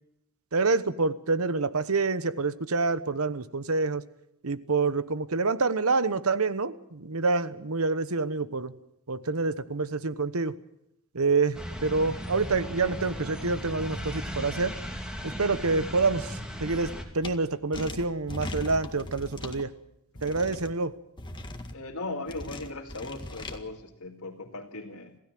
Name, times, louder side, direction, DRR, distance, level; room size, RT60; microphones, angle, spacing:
voice 1, 0.5-4.0 4.4-8.7 9.1-10.5 11.1-14.7 15.2-19.7 20.2-20.9, right 3 dB, 70° right, 14 dB, 1.1 m, -27 dB
sound 1, 11.5-17.0, equal, 5° right, 2.8 m, -37 dB
sound 2, 17.2-17.3 17.7-19.6 20.2-20.7 21.2-21.7 22.3-23.6, left 1 dB, 20° left, 1.8 m, -39 dB
voice 2, 21.7-25.2, left 2 dB, 70° left, -1 dB, 2.1 m, -38 dB
27.0 x 16.0 x 7.7 m, 0.82 s
head